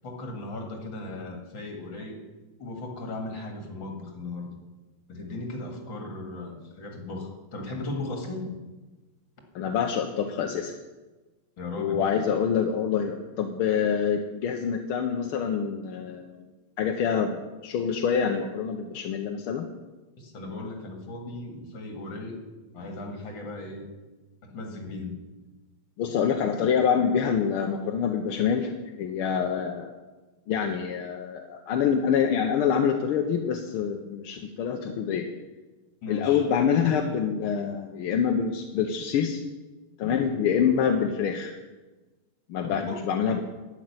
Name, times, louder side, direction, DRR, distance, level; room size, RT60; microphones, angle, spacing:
voice 1, 0.0-2.2 2.6-4.6 5.1-8.6 11.6-12.0 20.2-22.4 22.7-23.9 24.4-25.2 36.0-36.5 42.6-43.1, left 2 dB, 65° left, 3 dB, 2.9 m, -37 dB
voice 2, 9.5-10.7 11.8-16.3 16.8-19.7 26.0-29.9 30.5-35.2 36.1-39.4 40.0-41.6 42.5-43.4, left 7 dB, 85° left, 3 dB, 1.7 m, -26 dB
11.5 x 6.5 x 9.6 m, 1.2 s
omnidirectional pair, 2.3 m